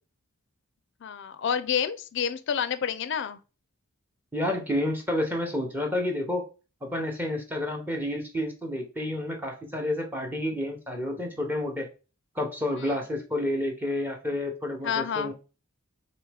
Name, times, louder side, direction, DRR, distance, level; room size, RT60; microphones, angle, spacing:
voice 1, 1.0-3.4 12.8-12.9 14.8-15.3, left 7 dB, 55° left, 0.4 m, -29 dB
voice 2, 4.3-6.5 6.8-11.9 12.3-15.3, left 1 dB, 10° right, 0.8 m, -30 dB
4.7 x 3.0 x 3.4 m
head